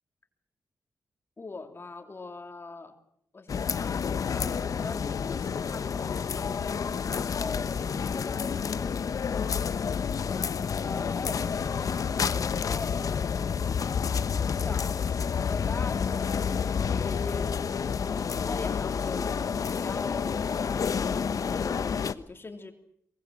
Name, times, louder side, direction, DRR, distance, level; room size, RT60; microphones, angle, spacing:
voice 1, 1.4-3.0 3.3-6.6 7.1-9.6 10.2-10.5 10.8-13.3 13.6-22.7, left 3 dB, 35° left, 5 dB, 3.1 m, -42 dB
sound 1, 3.5-22.1, left 6 dB, 60° left, 1.0 m, -29 dB
23.0 x 22.5 x 7.6 m, 0.70 s
cardioid pair, 75°, 7 cm